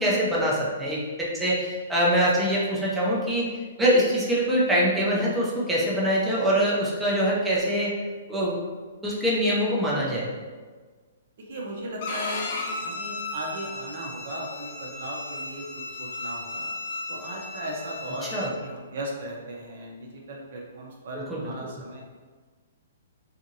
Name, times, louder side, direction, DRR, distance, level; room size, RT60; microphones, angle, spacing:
voice 1, 0.0-3.5 3.8-7.9 8.3-8.6 9.0-10.3 18.2-18.5 21.1-21.4, equal, 5° right, -7 dB, 0.5 m, -24 dB
voice 2, 11.5-16.7 17.1-22.0, right 1 dB, 60° right, -1 dB, 0.7 m, -37 dB
Bowed string instrument, 12.0-18.5, left 3 dB, 50° left, 0.5 m, -35 dB
2.7 x 2.4 x 2.7 m, 1.4 s
hypercardioid pair, 155°, 0 cm